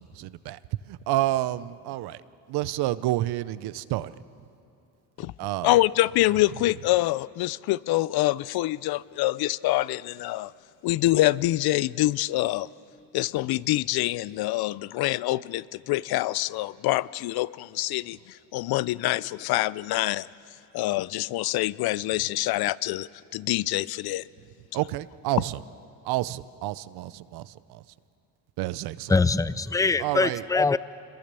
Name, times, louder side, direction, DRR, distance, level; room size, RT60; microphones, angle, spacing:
voice 1, 0.1-0.6 0.9-2.2 2.5-4.1 5.4-5.7 24.7-25.6 26.0-27.8 28.6-29.1 30.0-30.4, right 15 dB, 80° right, 16 dB, 0.8 m, -29 dB
voice 2, 5.6-10.5 10.8-12.7 13.1-20.3 20.7-24.2, left 17 dB, 75° left, 20 dB, 0.6 m, -25 dB
voice 3, 29.1-30.8, left 3 dB, 10° left, 16 dB, 0.5 m, -23 dB
27.0 x 22.0 x 6.9 m, 2.7 s
cardioid pair, 85°, 38 cm